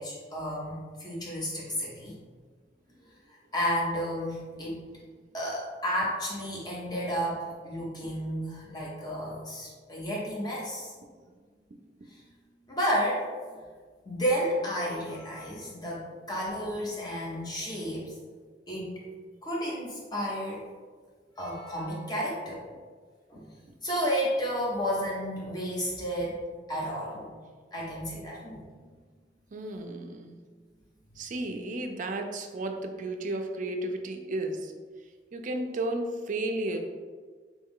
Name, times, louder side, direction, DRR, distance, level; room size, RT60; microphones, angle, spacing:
voice 1, 0.0-2.1 3.5-4.8 5.3-10.9 12.7-13.6 14.0-18.1 18.7-18.9 19.4-20.6 21.4-22.6 23.3-23.5 23.8-26.4 26.7-27.3 27.7-28.6, equal, 25° left, -4 dB, 1.0 m, -32 dB
voice 2, 29.5-30.4 31.2-34.7 35.3-36.8, right 2 dB, 45° right, 5 dB, 0.4 m, -33 dB
3.3 x 3.0 x 3.6 m, 1.5 s
head